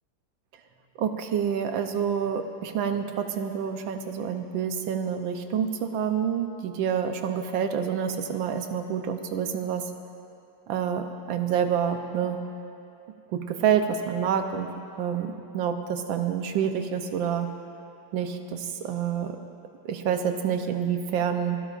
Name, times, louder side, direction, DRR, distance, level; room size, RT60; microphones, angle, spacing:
voice 1, 1.0-9.8 10.7-12.4 13.3-14.7 15.0-17.5 18.1-19.4 19.8-21.6, right 8 dB, 75° right, 6 dB, 1.5 m, -28 dB
29.5 x 12.0 x 2.5 m, 2.7 s
omnidirectional pair, 2.2 m